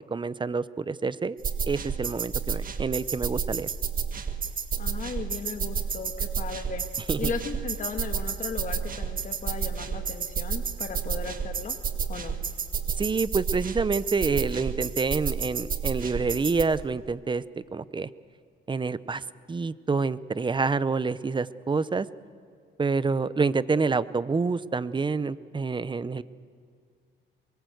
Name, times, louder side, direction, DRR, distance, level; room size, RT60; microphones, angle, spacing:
voice 1, 0.0-1.4 1.7-3.7 7.1-7.3 13.0-18.1 18.7-22.1 22.8-26.2, right 4 dB, 25° right, 17 dB, 0.7 m, -27 dB
sound 1, 1.4-16.6, right 6 dB, 45° right, 1.8 m, -31 dB
voice 2, 4.8-6.8 7.2-11.7 12.1-12.3, left 5 dB, 40° left, 5 dB, 1.7 m, -36 dB
23.5 x 22.0 x 7.9 m, 2.1 s
cardioid pair, 90°, 20 cm